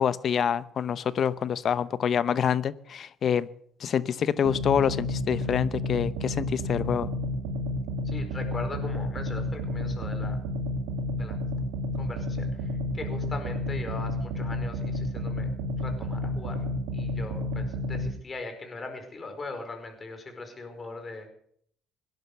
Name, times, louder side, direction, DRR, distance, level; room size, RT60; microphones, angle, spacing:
voice 1, 0.0-3.5 3.8-7.1, left 8 dB, 55° left, 16 dB, 0.9 m, -26 dB
sound 1, 4.4-18.1, left 1 dB, 85° right, 2.4 m, -31 dB
voice 2, 8.0-10.4 11.2-11.4 11.9-15.5 15.8-16.6 16.9-21.3, left 3 dB, 35° left, 6 dB, 4.9 m, -40 dB
18.0 x 10.5 x 6.8 m, 0.63 s
supercardioid pair, 70°, 0 cm